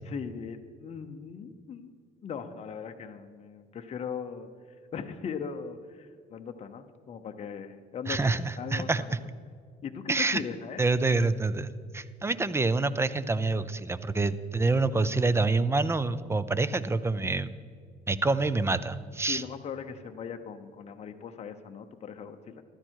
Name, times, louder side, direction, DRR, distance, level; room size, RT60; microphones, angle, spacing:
voice 1, 0.0-1.9 2.2-8.2 8.6-9.2 9.8-10.9 19.3-22.6, left 6 dB, 40° left, 5 dB, 0.9 m, -39 dB
voice 2, 8.1-9.0 10.1-10.4 10.8-17.5 18.1-19.4, right 3 dB, 15° right, 15 dB, 0.6 m, -27 dB
14.5 x 12.5 x 4.6 m, 2.1 s
cardioid pair, 110°, 17 cm